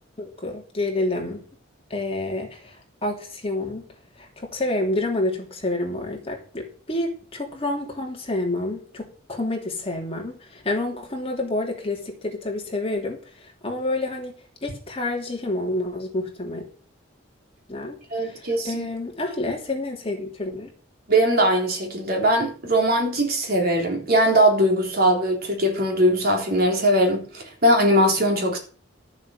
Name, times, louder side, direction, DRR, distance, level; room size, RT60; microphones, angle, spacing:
voice 1, 0.2-1.4 1.9-3.8 4.2-16.7 17.7-20.7, left 2 dB, 30° left, 3.1 m, -29 dB
voice 2, 18.1-18.9 21.1-28.6, right 1 dB, 55° right, 3.7 m, -20 dB
12.5 x 7.3 x 6.5 m
head